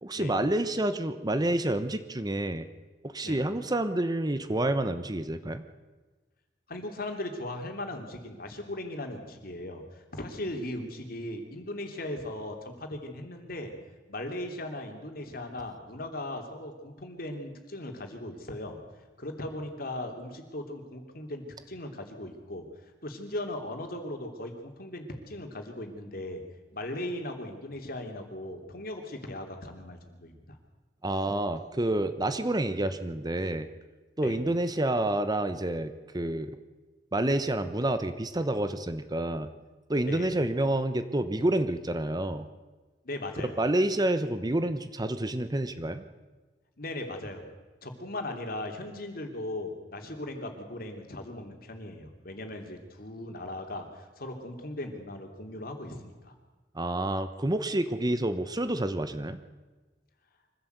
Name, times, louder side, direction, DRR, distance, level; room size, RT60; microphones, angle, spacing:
voice 1, 0.0-2.7 3.0-5.6 31.0-33.7 34.2-36.6 37.1-39.5 39.9-42.4 43.6-46.0 56.7-59.4, right 1 dB, 25° right, 10 dB, 1.0 m, -28 dB
voice 2, 6.7-13.7 14.1-18.8 19.2-22.7 23.0-26.4 26.7-30.6 34.2-34.4 40.1-40.3 43.0-43.6 46.8-47.5 47.8-56.3, left 1 dB, 55° left, 4 dB, 3.1 m, -38 dB
24.0 x 15.5 x 8.1 m, 1.3 s
head